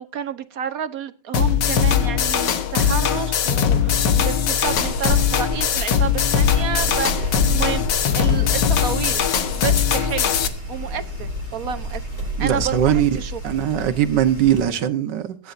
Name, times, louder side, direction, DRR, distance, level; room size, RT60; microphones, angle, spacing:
voice 1, 0.0-7.8 8.1-9.2 9.6-10.3 10.7-13.4, right 8 dB, 60° right, 1.3 m, -30 dB
sound 1, 1.3-10.5, left 8 dB, 85° left, 1.9 m, -20 dB
sound 2, 4.6-14.6, equal, 40° left, 7.9 m, -30 dB
voice 2, 12.4-13.1 13.4-15.5, right 11 dB, 85° right, 1.7 m, -20 dB
23.5 x 10.0 x 2.6 m
omnidirectional pair, 1.8 m